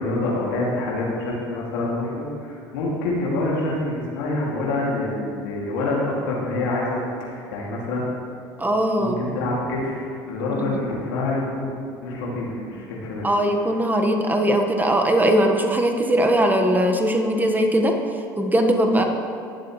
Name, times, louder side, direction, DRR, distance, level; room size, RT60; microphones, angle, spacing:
voice 1, 0.0-8.1 9.0-13.3, left 2 dB, 80° left, -4 dB, 2.6 m, -26 dB
voice 2, 8.6-9.2 10.6-10.7 13.2-17.9 18.4-19.0, right 1 dB, 15° right, 4 dB, 1.5 m, -20 dB
19.0 x 7.7 x 3.3 m, 2.3 s
hypercardioid pair, 70°, 11 cm